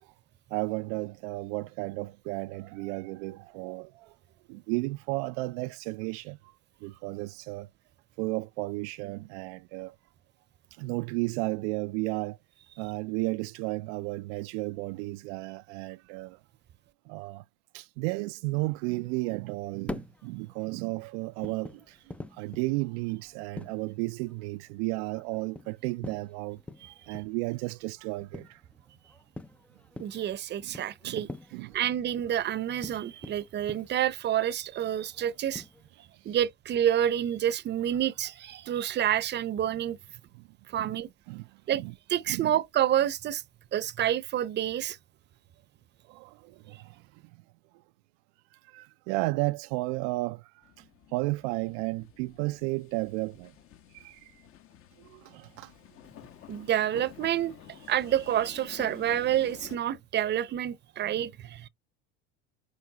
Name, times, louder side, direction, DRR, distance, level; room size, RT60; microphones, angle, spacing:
voice 1, 0.5-4.2 4.5-6.4 6.8-7.7 8.2-9.9 10.8-12.4 12.8-16.4 17.1-17.4 17.7-22.0 22.3-26.6 27.1-28.6 31.0-31.2 31.5-31.8 36.2-36.4 40.3-40.4 40.8-41.0 41.3-41.9 42.3-42.5 46.1-47.2 48.7-50.8 51.1-53.5 53.9-54.3 55.0-55.7 61.0-61.2, right 22 dB, 65° right, 0.5 m, -33 dB
sound 1, 19.7-35.9, left 2 dB, 5° left, 0.4 m, -46 dB
voice 2, 30.0-31.3 31.7-35.6 36.2-40.0 40.7-41.1 41.7-41.8 42.1-43.4 43.7-45.0 56.5-61.7, right 11 dB, 30° right, 0.8 m, -28 dB
sound 2, 50.6-59.8, left 11 dB, 40° left, 1.0 m, -51 dB
9.5 x 3.4 x 4.0 m
supercardioid pair, 120°, 35 cm